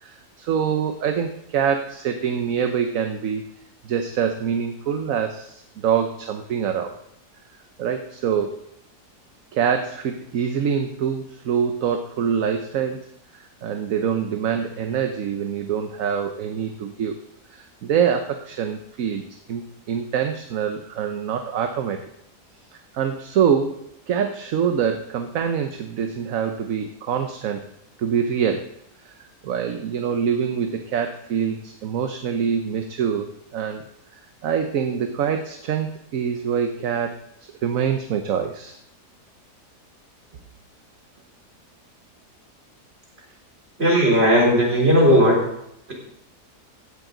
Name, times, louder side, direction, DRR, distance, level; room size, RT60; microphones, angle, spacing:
voice 1, 0.0-3.5 3.8-6.9 7.8-8.6 9.5-13.1 13.3-17.2 17.5-22.0 22.7-27.6 28.0-28.7 29.0-33.8 34.4-37.2 37.6-38.8, right 7 dB, 60° right, 6 dB, 1.1 m, -25 dB
voice 2, 43.8-45.4, equal, 40° right, -2 dB, 4.0 m, -16 dB
16.0 x 10.5 x 3.9 m, 0.76 s
omnidirectional pair, 1.7 m